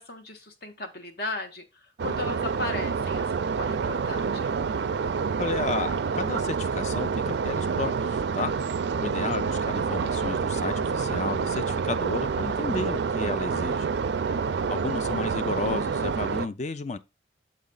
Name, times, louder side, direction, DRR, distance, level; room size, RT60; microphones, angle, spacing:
voice 1, 0.0-4.6 14.2-14.9, left 2 dB, 55° left, 1.2 m, -37 dB
sound 1, 2.0-16.5, right 5 dB, 65° right, 0.4 m, -28 dB
voice 2, 5.4-8.5 9.0-13.9 14.7-17.0, left 3 dB, 40° left, 0.4 m, -32 dB
7.4 x 4.2 x 3.8 m
head